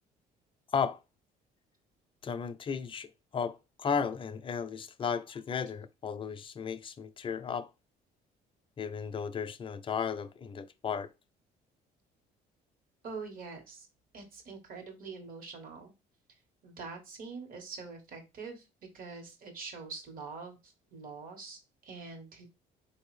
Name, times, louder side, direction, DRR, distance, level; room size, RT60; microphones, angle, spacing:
voice 1, 2.2-7.7 8.8-11.1, left 6 dB, 30° left, 0.5 m, -34 dB
voice 2, 13.0-13.9 14.1-15.9 16.6-18.7 18.9-22.5, right 4 dB, 55° right, 1.5 m, -44 dB
4.2 x 2.7 x 3.2 m
cardioid pair, 110°, 17 cm